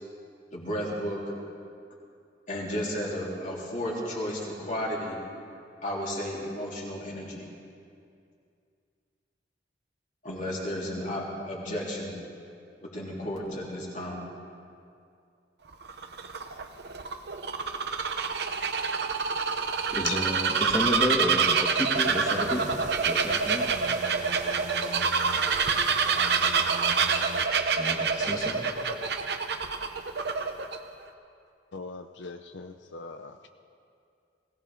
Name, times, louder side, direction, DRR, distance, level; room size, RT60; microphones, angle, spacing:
voice 1, 0.5-1.4 2.5-5.2 5.8-7.4 10.2-12.1 12.8-14.2, equal, 45° left, -4 dB, 3.7 m, -33 dB
Bird vocalization bird call bird song, 15.7-30.8, right 5 dB, 65° right, 0.9 m, -27 dB
voice 2, 19.9-23.7 27.8-28.6, equal, 20° left, -1 dB, 1.3 m, -31 dB
sound 1, 21.9-27.5, right 4 dB, 40° right, 0.6 m, -39 dB
voice 3, 31.7-33.4, left 5 dB, 85° left, 7 dB, 0.6 m, -39 dB
21.0 x 17.5 x 3.8 m, 2.4 s
head